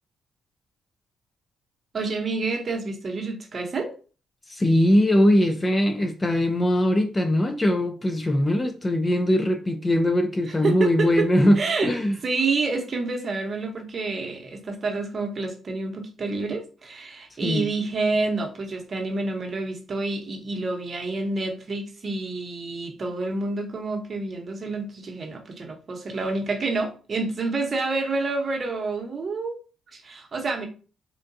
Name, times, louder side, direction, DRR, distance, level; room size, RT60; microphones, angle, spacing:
voice 1, 1.9-3.9 10.5-11.3 11.6-11.9 12.2-29.6 29.9-30.7, right 3 dB, 40° right, 0.8 m, -28 dB
voice 2, 4.5-12.2 17.4-17.7, left 1 dB, 20° left, 0.4 m, -21 dB
3.7 x 2.2 x 2.6 m
cardioid pair, 90°, 0 cm